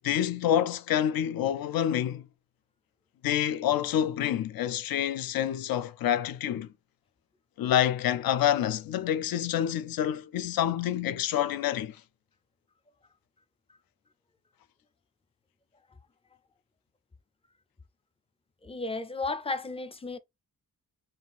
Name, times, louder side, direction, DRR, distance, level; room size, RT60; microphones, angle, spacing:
voice 1, 0.0-2.2 3.2-6.7 7.6-12.0, left 10 dB, 80° left, 0.5 m, -27 dB
voice 2, 18.6-20.2, left 3 dB, 15° left, 0.4 m, -33 dB
3.7 x 2.4 x 3.9 m
wide cardioid pair, 145°, 35 cm